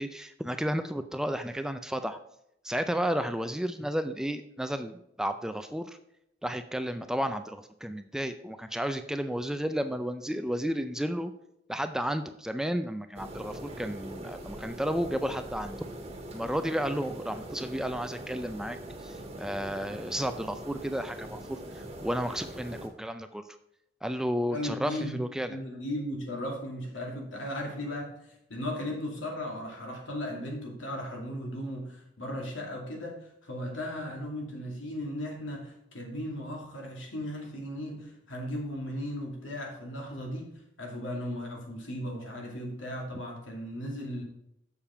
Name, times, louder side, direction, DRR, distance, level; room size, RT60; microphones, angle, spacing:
voice 1, 0.0-2.2 2.6-6.0 6.4-11.3 11.7-15.8 16.3-18.8 19.0-23.4 24.0-25.6, equal, 5° right, 9 dB, 0.4 m, -32 dB
sound 1, 13.1-22.9, right 1 dB, 30° right, 1.4 m, -42 dB
voice 2, 24.5-25.2 25.5-44.2, left 1 dB, 85° left, 0 dB, 2.4 m, -36 dB
7.2 x 6.9 x 4.5 m, 0.78 s
head